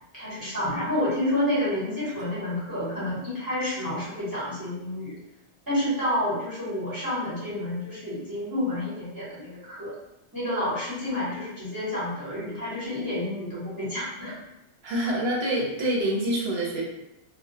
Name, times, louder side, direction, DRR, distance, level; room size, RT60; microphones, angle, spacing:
voice 1, 0.1-5.2 5.7-9.9 10.3-14.4, left 1 dB, 20° right, -10 dB, 1.1 m, -29 dB
voice 2, 14.8-16.8, right 1 dB, 70° right, -3 dB, 0.9 m, -26 dB
2.2 x 2.1 x 2.7 m, 0.85 s
omnidirectional pair, 1.1 m